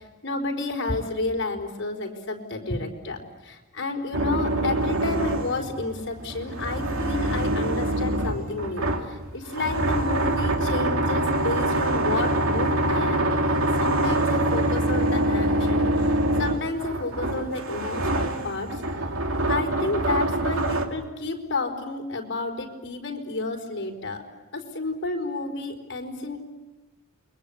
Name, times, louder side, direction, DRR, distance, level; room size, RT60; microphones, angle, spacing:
voice 1, 0.0-13.4 13.8-18.8 19.5-24.2 24.5-26.4, left 3 dB, 55° left, 2 dB, 4.6 m, -31 dB
sound 1, 4.1-20.9, right 1 dB, 85° right, 2.6 m, -25 dB
29.0 x 23.0 x 8.6 m, 1.2 s
head